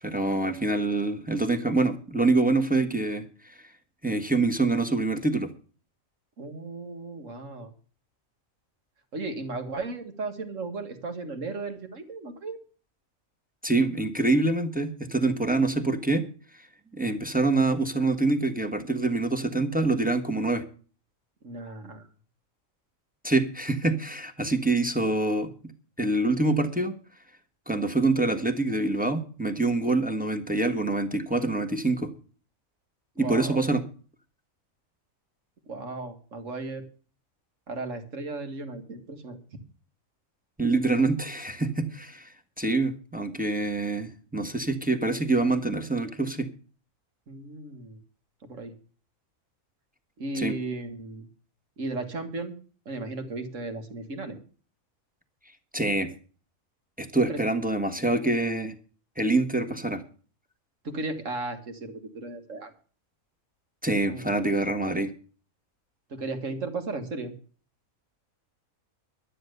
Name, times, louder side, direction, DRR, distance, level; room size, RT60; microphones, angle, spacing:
voice 1, 0.0-3.5 4.0-5.5 13.6-16.2 16.9-20.6 23.2-25.5 26.0-26.9 27.7-32.1 33.2-33.8 40.6-42.3 42.6-46.5 50.3-50.5 55.7-56.1 57.0-58.7 59.2-60.0 63.8-65.1, right 2 dB, 5° right, 5 dB, 1.3 m, -25 dB
voice 2, 6.4-7.7 9.1-12.6 21.4-22.1 33.2-33.6 35.7-36.8 37.7-39.4 47.3-48.0 48.4-48.7 50.2-51.3 51.8-52.5 52.9-54.4 57.3-57.4 60.8-62.7 64.1-64.4 66.1-67.3, right 3 dB, 65° right, 7 dB, 2.1 m, -35 dB
11.5 x 10.0 x 6.7 m, 0.40 s
omnidirectional pair, 1.4 m